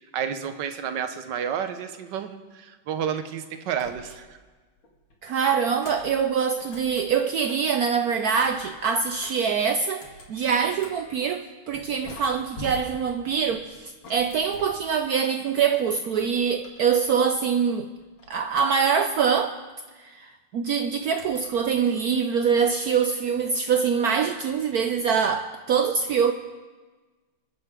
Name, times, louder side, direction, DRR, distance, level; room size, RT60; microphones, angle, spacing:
voice 1, 0.1-4.4, right 8 dB, 65° right, 1.5 m, -31 dB
sound 1, 3.8-4.5 4.8-7.8 8.2-11.2 11.7-15.3 15.7-17.4 17.7-19.1 21.1-21.8, left 1 dB, 75° left, 2.8 m, -46 dB
voice 2, 5.2-10.0 10.3-17.9 18.3-19.5 20.0-26.3, right 6 dB, 80° right, 0.8 m, -24 dB
26.0 x 8.9 x 3.7 m
omnidirectional pair, 2.3 m